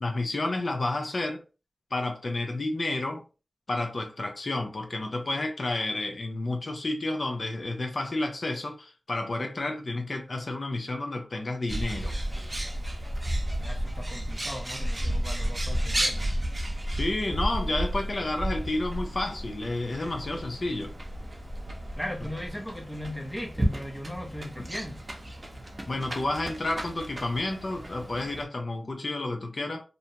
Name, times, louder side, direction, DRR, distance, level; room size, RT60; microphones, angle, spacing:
voice 1, 0.0-1.4 1.9-3.2 3.7-12.1 16.9-20.9 24.5-24.7 25.9-29.8, left 2 dB, 60° left, 0.6 m, -30 dB
Bird, 11.7-28.4, right 1 dB, 35° right, 0.7 m, -32 dB
voice 2, 13.6-16.3 22.0-25.0, left 1 dB, 5° left, 0.7 m, -38 dB
2.7 x 2.1 x 2.8 m
cardioid pair, 45°, 0 cm